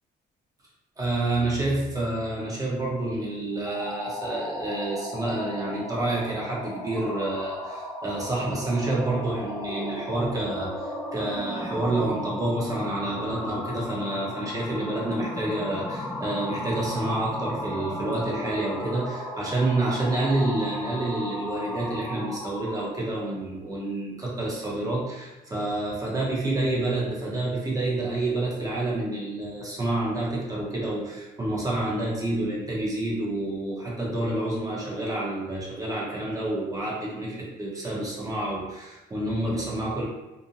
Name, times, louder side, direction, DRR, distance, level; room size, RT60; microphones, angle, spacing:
voice 1, 1.0-40.0, right 2 dB, 20° right, -4 dB, 0.8 m, -28 dB
sound 1, 3.6-23.0, left 1 dB, 5° left, 0.3 m, -35 dB
2.6 x 2.1 x 2.8 m, 1.0 s
cardioid pair, 110°, 17 cm